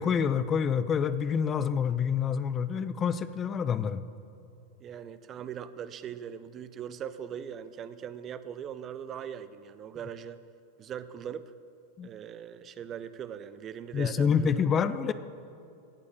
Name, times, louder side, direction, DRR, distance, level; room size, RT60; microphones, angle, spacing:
voice 1, 0.0-4.0 12.0-12.1 13.9-15.1, left 7 dB, 25° left, 13 dB, 0.5 m, -27 dB
voice 2, 4.8-10.4 10.8-11.5 12.0-14.6, right 8 dB, 30° right, 14 dB, 0.5 m, -40 dB
17.5 x 6.4 x 7.1 m, 2.5 s
figure-of-eight pair, 90°, 0 cm